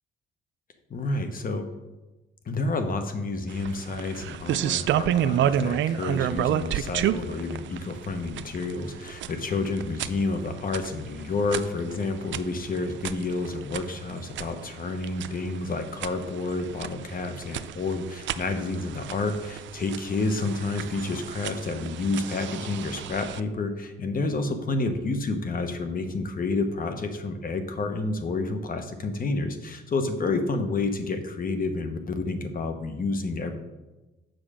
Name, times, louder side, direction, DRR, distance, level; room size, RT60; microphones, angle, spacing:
voice 1, 0.9-1.7 2.5-33.6, left 3 dB, 45° left, 7 dB, 1.1 m, -29 dB
sound 1, 3.5-23.4, right 10 dB, 70° right, 0.5 m, -31 dB
7.7 x 6.1 x 5.0 m, 1.1 s
cardioid pair, 90°, 20 cm